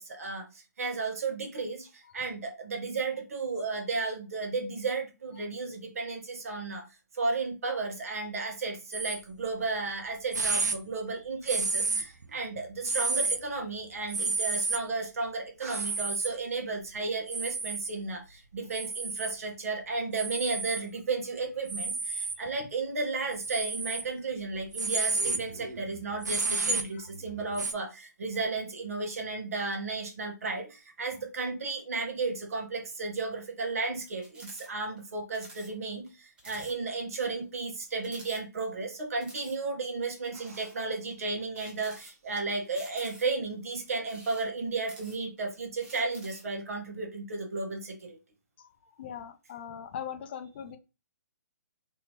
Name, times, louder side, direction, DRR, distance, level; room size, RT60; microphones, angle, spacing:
voice 1, 0.0-6.9 7.1-48.2, right 3 dB, 55° right, 3 dB, 1.2 m, -34 dB
sound 1, 8.9-9.2 9.9-10.0 10.3-10.8 11.5-12.2 12.8-13.4 14.1-14.8 15.7-16.3 17.3-17.9 18.7-19.4 20.1-20.8 21.7-22.4 23.3-24.0 24.5-27.7, right 3 dB, 70° right, 0.6 m, -31 dB
sound 2, 34.2-34.7 35.0-35.1 35.3-35.7 36.1-36.2 36.4-36.7 37.2-37.3 38.0-38.8 39.2-39.6 40.2-40.8 41.5-42.4 42.8-43.5 44.0-45.4 45.8-46.5, right 2 dB, 10° right, 0.8 m, -50 dB
voice 2, 48.6-50.8, left 8 dB, 35° left, 8 dB, 0.5 m, -42 dB
4.1 x 2.8 x 2.9 m, 0.28 s
figure-of-eight pair, 135°, 10 cm